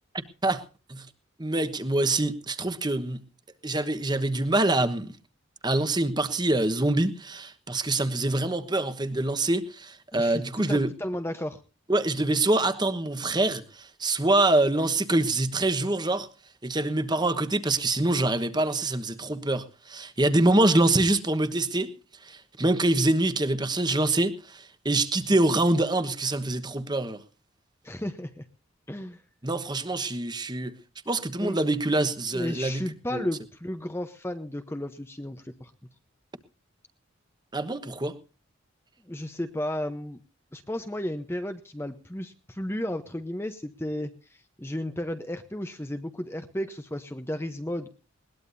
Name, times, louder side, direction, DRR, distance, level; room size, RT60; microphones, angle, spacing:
voice 1, 1.4-3.2 3.6-5.1 5.6-10.9 11.9-16.3 16.6-21.9 22.2-27.2 29.4-30.8 31.1-32.8 33.1-33.3 37.5-38.2, right 2 dB, 20° right, 10 dB, 1.2 m, -25 dB
voice 2, 10.1-11.6 27.8-28.5 28.9-29.2 31.4-31.6 32.3-35.7 39.1-40.2 40.5-47.9, left 1 dB, 10° left, 8 dB, 0.8 m, -33 dB
21.0 x 19.0 x 2.7 m, 0.36 s
head